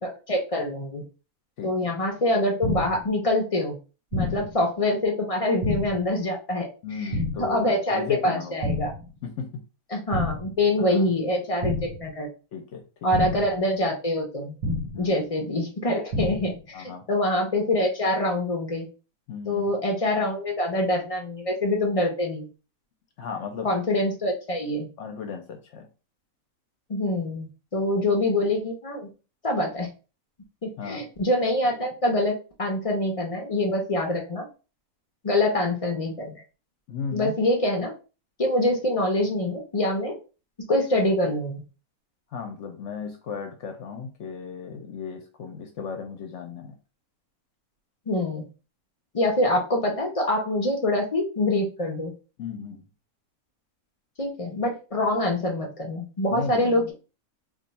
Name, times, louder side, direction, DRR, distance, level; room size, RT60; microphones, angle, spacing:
voice 1, 0.0-1.0 1.6-3.8 4.1-6.7 7.4-8.9 9.9-12.3 13.0-14.5 15.0-18.9 19.5-22.5 23.6-24.9 26.9-27.5 27.7-29.1 29.4-29.9 30.6-34.5 35.2-36.4 37.1-37.9 38.4-40.2 40.7-41.6 48.1-48.4 49.1-52.1 54.2-56.9, left 1 dB, 45° left, 1 dB, 0.4 m, -25 dB
voice 2, 1.6-1.9 4.2-4.5 6.8-8.6 9.2-9.6 10.8-11.1 12.5-13.1 14.9-15.2 16.7-17.0 19.3-19.7 23.2-23.7 25.0-25.9 30.8-31.0 36.9-37.4 42.3-46.8 52.4-52.8 56.3-56.9, left 6 dB, 65° left, 5 dB, 0.8 m, -35 dB
sound 1, 2.6-3.1 4.1-4.6 5.6-6.1 7.1-7.6 8.6-9.1 10.1-10.6 11.6-12.1 13.1-13.6 14.6-15.1 16.1-16.6, left 2 dB, 80° right, 1.1 m, -29 dB
2.5 x 2.3 x 4.0 m, 0.33 s
omnidirectional pair, 1.5 m